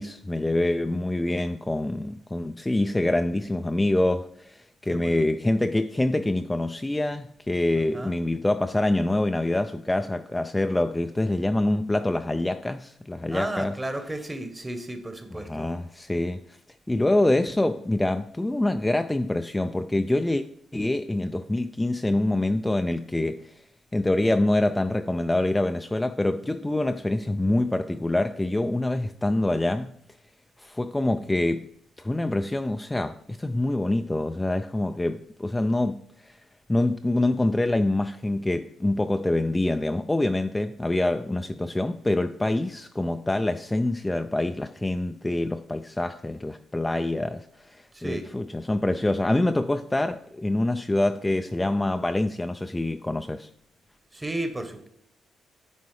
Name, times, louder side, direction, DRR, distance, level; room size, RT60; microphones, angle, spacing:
voice 1, 0.0-13.8 15.3-16.6 16.9-20.4 20.7-23.6 23.9-30.0 30.6-31.7 32.0-36.4 36.7-53.5, left 1 dB, 15° left, 0.3 m, -25 dB
voice 2, 4.9-5.2 7.9-8.1 13.3-15.7 47.9-48.3 54.1-54.9, right 1 dB, 15° right, 1.0 m, -33 dB
9.3 x 3.7 x 3.2 m
cardioid pair, 75°, 0 cm